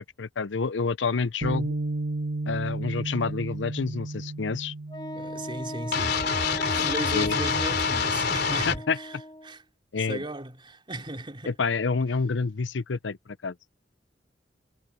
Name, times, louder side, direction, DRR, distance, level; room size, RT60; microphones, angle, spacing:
voice 1, 0.0-1.7 2.5-4.7 6.7-7.4 8.7-9.0 9.9-10.2 11.5-13.5, left 4 dB, 90° left, 0.7 m, -28 dB
Bass guitar, 1.4-7.7, right 2 dB, 75° right, 3.0 m, -34 dB
Wind instrument woodwind instrument, 4.9-9.5, equal, 25° left, 2.8 m, -37 dB
voice 2, 5.1-6.4 6.7-9.2 9.4-9.6 10.0-11.5, right 1 dB, 30° right, 3.9 m, -37 dB
sound 1, 5.9-8.8, left 5 dB, 65° left, 3.4 m, -26 dB
head